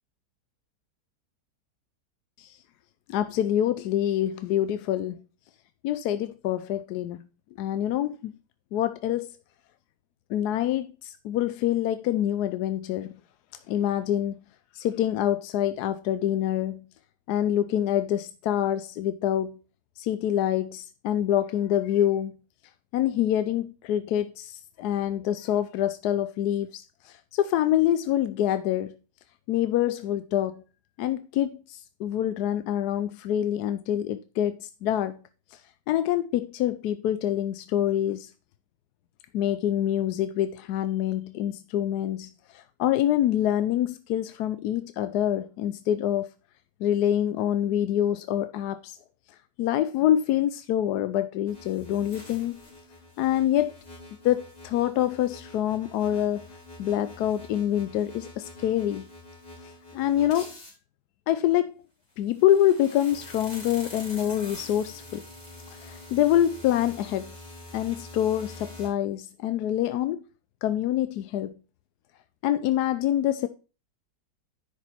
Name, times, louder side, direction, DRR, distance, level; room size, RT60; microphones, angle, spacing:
voice 1, 3.1-5.2 5.8-7.2 7.6-8.3 8.7-9.3 10.3-13.2 13.7-14.4 14.7-16.8 17.3-19.6 20.0-22.3 22.9-29.0 29.5-30.6 31.0-35.2 35.9-38.3 39.3-46.3 46.8-49.0 49.6-52.6 53.2-53.7 54.2-56.5 56.8-59.1 59.9-60.5 61.3-61.7 62.2-65.2 65.7-67.3 67.7-70.2 70.6-71.5 72.4-73.5, left 11 dB, 70° left, 1.0 m, -26 dB
sound 1, 51.5-60.7 62.2-68.9, left 2 dB, 20° left, 3.6 m, -45 dB
10.5 x 5.0 x 4.3 m
omnidirectional pair, 1.9 m